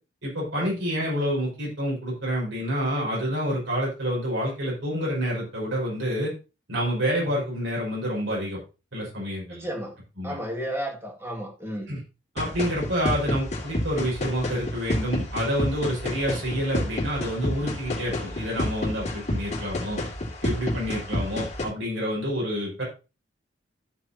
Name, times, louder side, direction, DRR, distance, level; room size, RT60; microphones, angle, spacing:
voice 1, 0.2-6.3 6.7-8.6 8.9-9.7 10.2-10.4 11.9-12.0 12.3-20.0 20.4-22.8, equal, 85° right, -4 dB, 5.5 m, -28 dB
voice 2, 9.5-10.0 10.2-11.9, equal, 15° right, 0 dB, 2.1 m, -33 dB
sound 1, 12.4-21.6, left 1 dB, 40° left, 2.2 m, -30 dB
13.0 x 6.5 x 2.9 m, 0.30 s
head